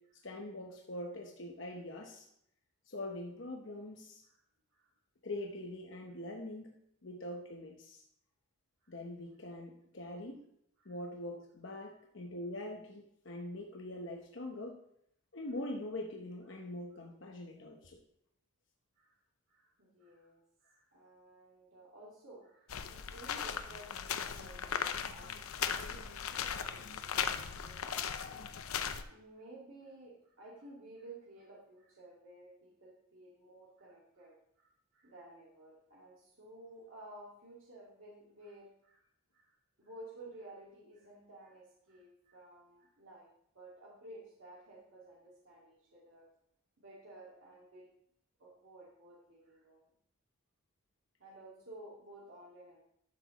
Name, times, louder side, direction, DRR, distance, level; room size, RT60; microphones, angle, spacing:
voice 1, 0.2-2.3 2.9-4.2 5.2-6.7 7.0-8.0 8.9-10.4 10.8-14.8 15.3-18.0, left 1 dB, 60° left, 1 dB, 0.9 m, -43 dB
voice 2, 19.5-39.0 39.3-43.3 43.5-46.3 46.8-47.9 48.4-49.9 51.2-52.8, right 1 dB, 70° right, -5 dB, 2.1 m, -54 dB
sound 1, 22.7-29.0, left 7 dB, 85° left, 0.6 m, -38 dB
12.0 x 6.3 x 3.0 m, 0.72 s
head